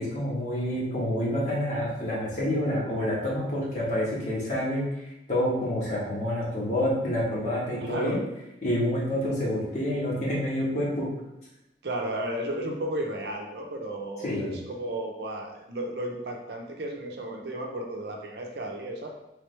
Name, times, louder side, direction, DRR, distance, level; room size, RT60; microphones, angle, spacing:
voice 1, 0.0-4.9 5.3-8.2 8.6-11.1 14.2-14.6, equal, 45° left, -5 dB, 1.2 m, -28 dB
voice 2, 7.8-8.2 11.8-19.1, right 1 dB, 70° right, 1 dB, 0.6 m, -33 dB
3.4 x 3.2 x 3.2 m, 0.89 s
head